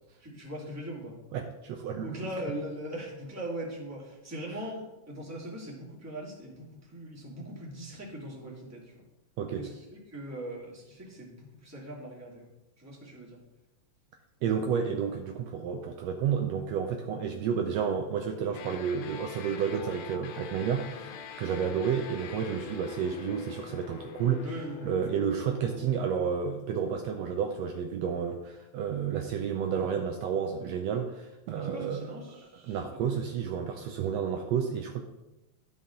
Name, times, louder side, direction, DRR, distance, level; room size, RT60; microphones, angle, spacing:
voice 1, 0.2-1.2 2.0-9.1 9.5-12.5 12.8-13.4 24.4-25.1 31.5-33.2, right 1 dB, 5° right, -4 dB, 1.7 m, -40 dB
voice 2, 1.3-2.3 9.4-9.7 14.4-21.1 21.4-24.5 24.8-32.0 32.6-35.0, right 7 dB, 75° right, 4 dB, 1.7 m, -31 dB
sound 1, 18.5-26.1, left 7 dB, 70° left, 1.9 m, -43 dB
12.5 x 5.5 x 3.8 m, 0.98 s
omnidirectional pair, 3.3 m